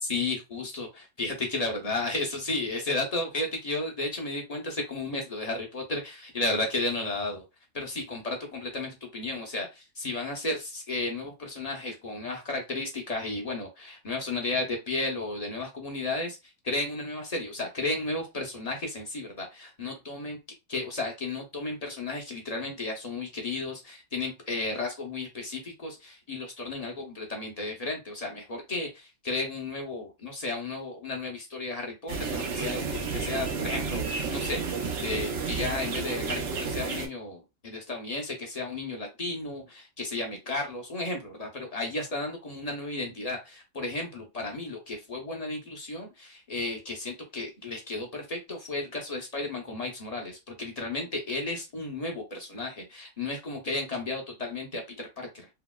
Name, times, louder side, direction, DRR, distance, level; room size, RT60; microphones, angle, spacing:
voice 1, 0.0-7.4 7.7-20.4 20.7-34.6 35.0-55.5, left 2 dB, 40° left, 2 dB, 0.6 m, -33 dB
sound 1, 32.1-37.1, right 4 dB, 70° right, 0.9 m, -31 dB
2.9 x 2.7 x 2.2 m, 0.24 s
omnidirectional pair, 1.3 m